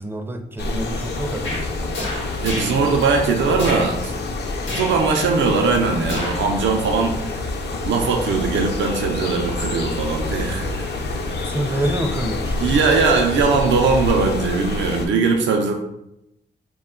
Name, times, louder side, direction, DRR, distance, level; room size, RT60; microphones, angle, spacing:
voice 1, 0.0-2.1 11.4-12.8, right 1 dB, 10° right, 5 dB, 0.4 m, -27 dB
sound 1, 0.6-15.1, left 2 dB, 60° left, 0.5 m, -27 dB
sound 2, 1.4-1.6 1.9-2.8 3.5-3.9 4.7-5.0 6.0-6.5 6.9-7.0, left 1 dB, 75° left, 0.9 m, -29 dB
voice 2, 2.4-4.1 4.7-7.3 7.8-10.8 12.6-15.7, right 4 dB, 75° right, 2 dB, 0.5 m, -20 dB
2.2 x 2.2 x 3.6 m, 0.82 s
cardioid pair, 60°, 20 cm